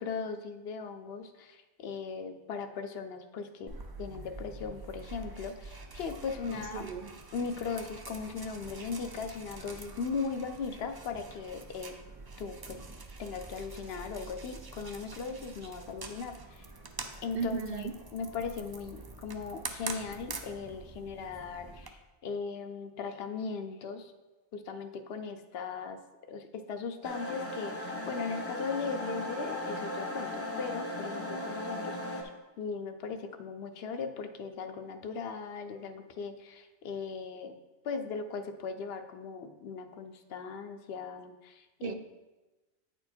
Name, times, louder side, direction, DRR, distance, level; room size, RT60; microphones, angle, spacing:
voice 1, 0.0-6.9 7.3-12.0 12.4-12.8 13.2-16.7 17.2-24.1 24.5-26.0 26.3-32.3 32.6-37.5 37.8-41.9, left 5 dB, 70° left, 8 dB, 0.8 m, -38 dB
sound 1, 3.7-21.9, right 3 dB, 35° right, 0.4 m, -45 dB
voice 2, 6.6-7.1 17.3-17.9 41.8-41.9, right 5 dB, 65° right, 8 dB, 0.7 m, -35 dB
sound 2, 27.0-32.2, left 1 dB, 15° left, 0.8 m, -37 dB
9.2 x 4.5 x 4.3 m, 1.1 s
omnidirectional pair, 1.1 m